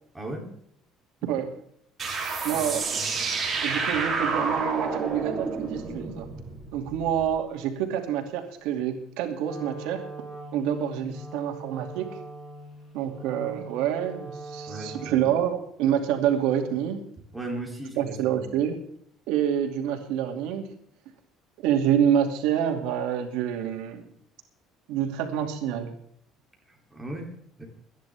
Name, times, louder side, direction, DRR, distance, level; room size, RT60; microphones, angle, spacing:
voice 1, 0.1-0.5 2.1-2.7 3.0-3.1 14.7-15.2 17.3-18.5 26.7-27.6, right 2 dB, 5° right, 0 dB, 3.1 m, -38 dB
sound 1, 2.0-7.3, right 4 dB, 25° right, 3.1 m, -29 dB
voice 2, 2.4-2.8 3.6-6.3 6.7-10.0 10.5-12.2 12.9-17.1 18.0-18.8 19.3-20.7 21.6-24.1 24.9-25.9, right 9 dB, 85° right, 4 dB, 2.5 m, -27 dB
Wind instrument woodwind instrument, 9.4-15.4, right 2 dB, 30° left, 6.2 m, -41 dB
24.0 x 10.5 x 3.5 m, 0.69 s
cardioid pair, 165°, 0 cm